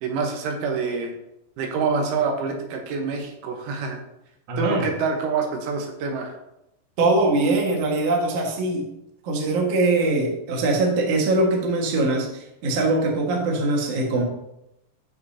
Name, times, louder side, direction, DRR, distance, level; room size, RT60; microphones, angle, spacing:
voice 1, 0.0-1.1 1.6-4.0 4.6-6.4, right 5 dB, 85° right, 3 dB, 3.7 m, -26 dB
voice 2, 4.5-4.9 7.0-8.9 9.2-14.2, right 2 dB, 50° right, 0 dB, 2.0 m, -22 dB
15.0 x 6.6 x 2.9 m, 0.84 s
omnidirectional pair, 5.4 m